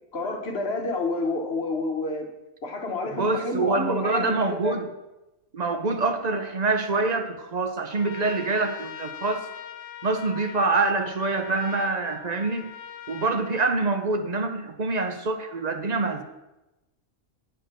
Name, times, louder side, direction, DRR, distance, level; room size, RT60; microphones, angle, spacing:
voice 1, 0.1-2.3 2.6-4.8, left 2 dB, 50° left, 4 dB, 1.2 m, -29 dB
voice 2, 3.1-4.8 5.5-9.5 10.0-12.6 13.1-16.2, right 3 dB, 50° right, 6 dB, 0.5 m, -25 dB
Trumpet, 7.9-14.4, left 8 dB, 80° left, 1.0 m, -42 dB
7.9 x 4.4 x 6.5 m, 0.99 s
omnidirectional pair, 1.4 m